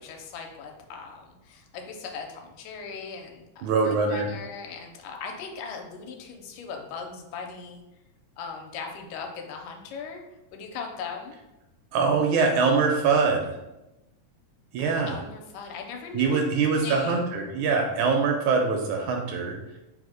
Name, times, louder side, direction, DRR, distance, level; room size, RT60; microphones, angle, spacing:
voice 1, 0.0-7.8 8.4-10.2 10.5-11.4 14.8-17.2, left 5 dB, 90° left, 3 dB, 2.2 m, -39 dB
voice 2, 3.6-4.3 11.9-13.5 14.7-15.2 16.1-19.6, right 4 dB, 80° right, 2 dB, 1.8 m, -23 dB
4.9 x 2.1 x 4.8 m, 0.96 s
omnidirectional pair, 3.7 m